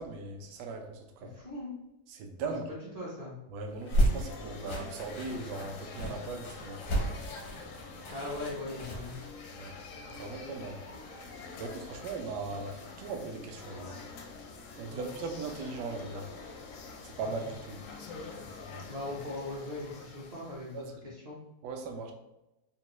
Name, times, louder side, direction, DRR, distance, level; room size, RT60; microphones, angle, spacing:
voice 1, 0.0-1.3 2.1-2.7 3.5-6.8 9.5-9.7 10.1-10.8 11.6-14.0 14.8-16.3 17.0-17.8 20.7-20.9 21.6-22.1, right 3 dB, 75° right, 4 dB, 1.1 m, -39 dB
voice 2, 1.3-1.7 2.7-3.3 8.1-9.2 14.9-15.1 17.2-17.4 18.9-21.4, left 2 dB, 55° right, -6 dB, 0.4 m, -40 dB
sound 1, 3.7-9.3, equal, 85° left, 1.4 m, -32 dB
sound 2, 3.9-20.9, left 4 dB, 70° left, 0.7 m, -46 dB
3.8 x 2.2 x 3.0 m, 0.93 s
omnidirectional pair, 1.8 m